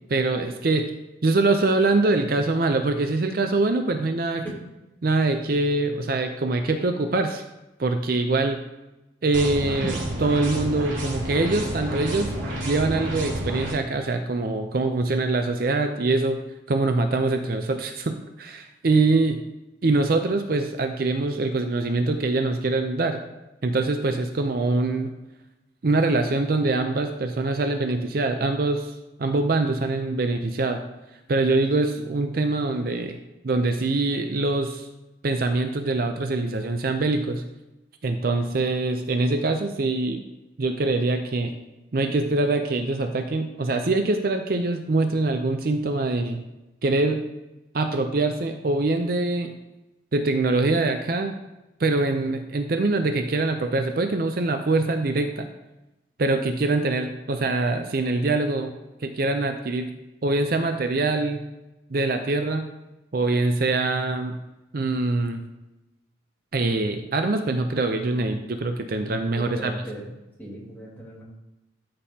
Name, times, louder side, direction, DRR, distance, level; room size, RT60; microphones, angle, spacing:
voice 1, 0.1-0.9 1.2-4.4 5.0-7.4 7.8-8.6 9.2-12.3 12.6-16.4 16.7-19.4 19.8-23.2 23.6-25.1 25.8-28.9 29.2-30.8 31.3-33.2 33.4-34.9 35.2-37.4 38.0-40.2 40.6-41.5 41.9-46.4 46.8-47.2 47.7-49.5 50.1-51.4 51.8-55.4 56.2-58.7 59.0-59.9 60.2-61.4 61.9-62.7 63.1-64.4 64.7-65.4 66.5-69.7, right 2 dB, 50° right, 6 dB, 0.5 m, -24 dB
sound 1, 9.3-13.7, right 1 dB, 85° right, 2.8 m, -30 dB
voice 2, 69.3-70.1 70.4-71.2, right 1 dB, 10° left, -5 dB, 2.0 m, -36 dB
12.5 x 5.4 x 2.8 m, 0.99 s
head